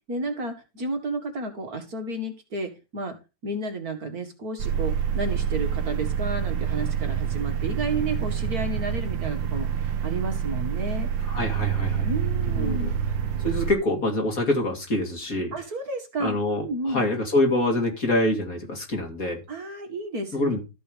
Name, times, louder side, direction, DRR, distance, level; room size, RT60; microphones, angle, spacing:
voice 1, 0.1-3.2 3.4-11.1 12.0-12.9 15.5-17.0 19.5-20.5, right 2 dB, 50° right, 5 dB, 2.3 m, -32 dB
sound 1, 4.6-13.7, right 8 dB, 80° right, 1.7 m, -27 dB
voice 2, 11.2-12.1 12.4-12.9 13.4-15.5 16.2-19.4 20.3-20.6, left 1 dB, 45° left, 2 dB, 3.4 m, -25 dB
13.5 x 5.6 x 5.1 m, 0.28 s
omnidirectional pair, 2.0 m